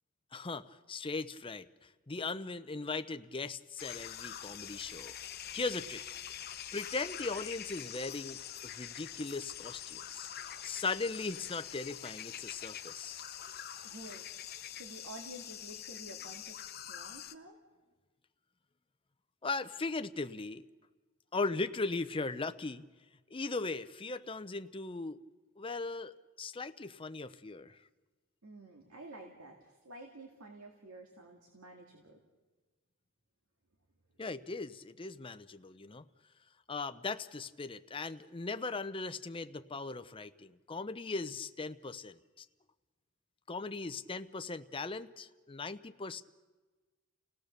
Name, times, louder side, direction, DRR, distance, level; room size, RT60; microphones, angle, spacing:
voice 1, 0.3-1.7 2.1-5.2 5.5-6.0 6.7-10.3 10.6-13.2 19.4-20.6 21.3-22.8 23.3-25.2 25.6-26.1 26.4-27.8 34.2-36.0 36.7-42.4 43.5-46.2, left 3 dB, 25° left, 11 dB, 0.6 m, -38 dB
sound 1, 3.8-17.3, left 10 dB, 45° left, 1.0 m, -45 dB
voice 2, 13.8-14.2 14.7-16.6 16.9-17.6 28.4-32.2, right 1 dB, 80° right, 2 dB, 2.2 m, -50 dB
30.0 x 17.5 x 6.7 m, 1.3 s
head